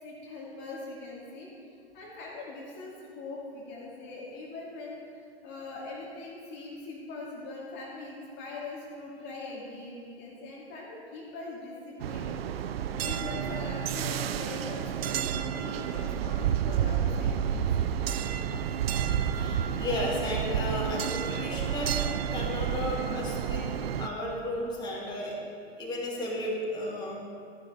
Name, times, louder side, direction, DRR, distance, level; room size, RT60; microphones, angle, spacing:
voice 1, 0.0-1.5 1.9-12.3 12.9-18.0, left 3 dB, 35° left, -4 dB, 2.3 m, -42 dB
sound 1, 12.0-24.1, right 9 dB, 65° right, 0.6 m, -30 dB
voice 2, 18.4-18.9 19.3-25.4 25.8-27.2, left 1 dB, 15° left, -5 dB, 2.5 m, -34 dB
13.0 x 11.0 x 3.5 m, 2.2 s
figure-of-eight pair, 100°, 32 cm